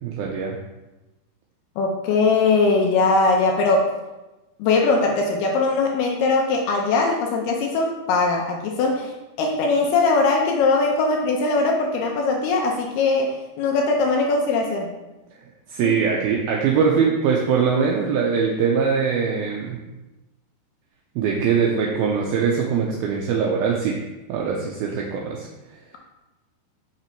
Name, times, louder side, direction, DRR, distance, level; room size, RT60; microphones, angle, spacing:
voice 1, 0.0-0.6 15.7-19.8 21.2-24.0 24.3-25.5, right 6 dB, 85° right, -1 dB, 2.2 m, -22 dB
voice 2, 1.8-3.9 4.6-9.1 9.4-14.9 15.8-16.0, left 3 dB, 75° left, 1 dB, 2.5 m, -20 dB
6.8 x 5.9 x 4.5 m, 1.1 s
omnidirectional pair, 5.0 m